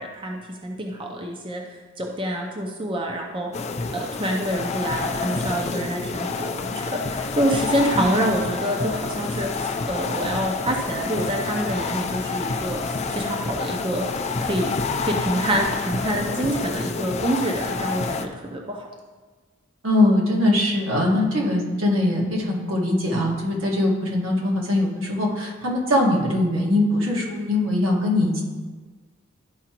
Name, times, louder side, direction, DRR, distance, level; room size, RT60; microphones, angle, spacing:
voice 1, 0.0-14.2 14.4-18.9, right 1 dB, 25° right, 1 dB, 0.6 m, -27 dB
sound 1, 3.5-18.2, left 4 dB, 35° left, 0.4 m, -28 dB
voice 2, 19.8-28.4, left 1 dB, 75° right, -3 dB, 1.7 m, -21 dB
12.5 x 4.9 x 2.9 m, 1.4 s
head